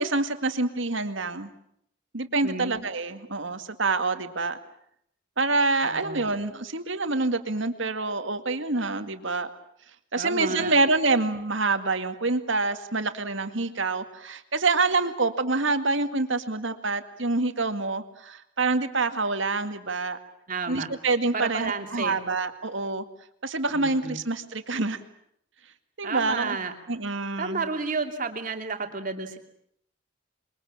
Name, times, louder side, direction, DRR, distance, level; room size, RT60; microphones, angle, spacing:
voice 1, 0.0-1.5 2.1-4.6 5.4-9.5 10.1-20.2 20.7-23.1 23.4-25.0 26.0-26.6 26.9-27.7, right 3 dB, 65° right, 8 dB, 2.1 m, -26 dB
voice 2, 2.4-2.9 5.8-6.2 10.2-10.7 20.5-20.9 21.3-22.2 23.7-24.2 26.0-26.7 27.4-29.4, right 4 dB, 40° right, 4 dB, 2.8 m, -31 dB
28.0 x 22.5 x 8.8 m, 0.72 s
head